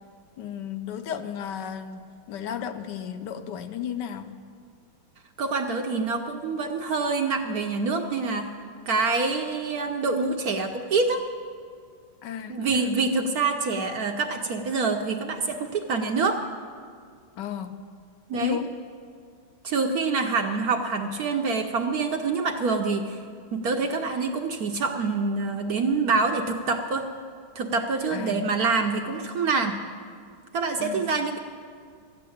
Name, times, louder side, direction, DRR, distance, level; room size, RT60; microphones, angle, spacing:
voice 1, 0.4-4.3 12.2-12.9 17.4-17.8 18.3-18.7 28.1-28.5 30.8-31.1, left 8 dB, 70° left, 9 dB, 1.1 m, -34 dB
voice 2, 5.4-8.5 8.9-11.2 12.5-16.4 18.3-18.6 19.6-23.2 23.5-27.1 27.6-29.8 30.5-31.4, right 4 dB, 65° right, 4 dB, 0.9 m, -26 dB
13.5 x 9.3 x 7.1 m, 2.1 s
omnidirectional pair, 2.2 m